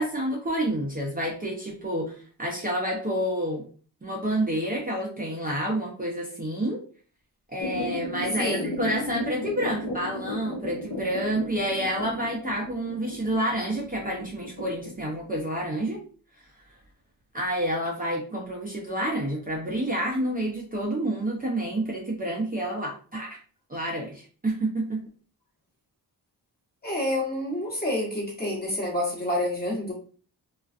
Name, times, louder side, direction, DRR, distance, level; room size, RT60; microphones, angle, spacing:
voice 1, 0.0-3.6 4.0-6.8 7.5-16.0 16.3-16.5 17.3-23.4 23.7-25.0, right 1 dB, 20° right, -3 dB, 0.6 m, -29 dB
sound 1, 7.6-15.4, left 2 dB, 70° left, 0.9 m, -35 dB
voice 2, 8.4-8.7 26.8-29.9, left 1 dB, 25° left, -3 dB, 1.1 m, -28 dB
2.4 x 2.3 x 2.4 m, 0.41 s
cardioid pair, 70°, 41 cm